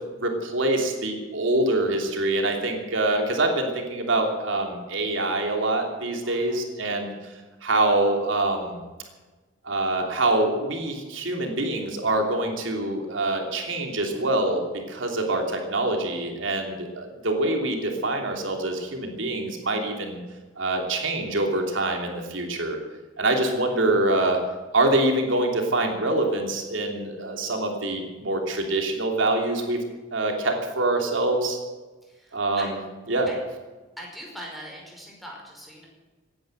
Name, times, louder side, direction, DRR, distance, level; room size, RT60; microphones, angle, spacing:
voice 1, 0.1-7.1 7.6-8.8 9.6-14.6 14.9-20.2 20.6-22.8 23.2-24.4 24.7-29.8 30.1-31.6 32.3-32.8 33.1-33.3, right 2 dB, 85° right, 2 dB, 3.1 m, -25 dB
voice 2, 6.2-6.6 16.5-16.9 32.0-32.7 33.3-33.4 34.0-35.9, equal, ahead, -2 dB, 5.3 m, -42 dB
17.5 x 10.5 x 8.0 m, 1.2 s
head